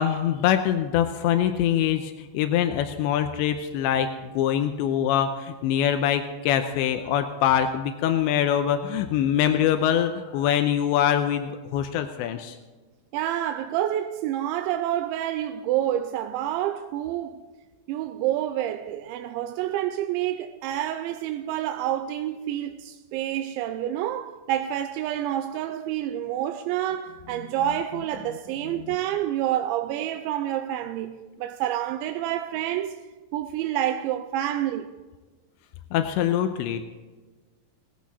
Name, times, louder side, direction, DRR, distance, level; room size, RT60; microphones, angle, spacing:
voice 1, 0.0-12.6 35.9-36.9, left 10 dB, 85° left, 3.0 m, -24 dB
voice 2, 13.1-17.4 17.9-33.0 33.3-34.9, right 12 dB, 90° right, 3.0 m, -28 dB
19.0 x 14.5 x 4.2 m
omnidirectional pair, 5.2 m